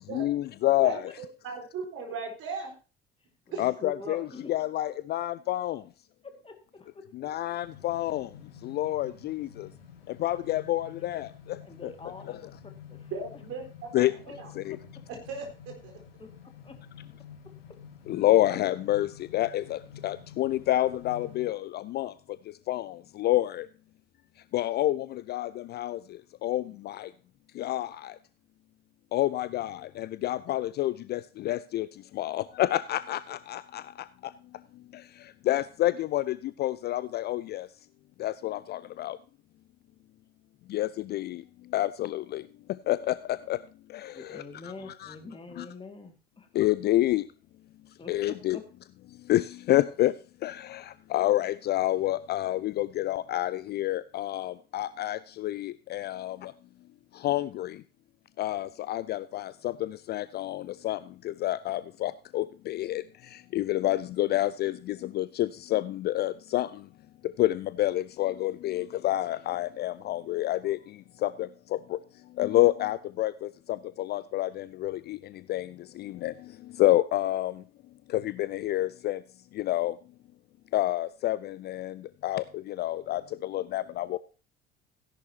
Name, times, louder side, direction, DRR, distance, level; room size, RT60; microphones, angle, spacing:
voice 1, 0.1-1.1 3.6-5.8 7.1-8.3 8.6-9.7 10.1-11.9 13.9-14.1 14.6-14.8 18.1-22.1 22.7-23.7 24.5-26.0 26.4-27.1 27.6-28.1 29.1-31.9 32.1-33.8 34.9-35.0 35.5-37.7 38.2-39.2 40.7-41.4 41.7-42.4 42.9-43.6 43.9-44.7 45.0-45.2 45.6-45.7 46.5-47.2 48.1-48.6 49.3-50.1 50.4-56.5 57.2-57.8 58.4-61.0 61.2-63.0 63.3-66.7 67.4-70.8 71.2-72.0 72.4-75.2 75.5-76.3 76.8-77.6 78.1-79.2 79.5-79.9 80.7-84.2, left 15 dB, 35° left, 16 dB, 0.4 m, -28 dB
voice 2, 0.8-2.7 3.5-3.6 4.0-4.1 13.1-14.5 15.1-15.9, right 4 dB, 45° right, 2 dB, 4.0 m, -38 dB
voice 3, 3.5-4.5 6.2-7.0 11.6-13.1 14.0-14.1 16.2-16.3 16.6-16.8 44.1-46.5 48.0-48.6, left 3 dB, 20° left, 5 dB, 2.1 m, -45 dB
sound 1, 7.6-21.5, left 8 dB, 75° left, 1.7 m, -49 dB
16.0 x 11.0 x 2.8 m, 0.34 s
figure-of-eight pair, 60°, 30 cm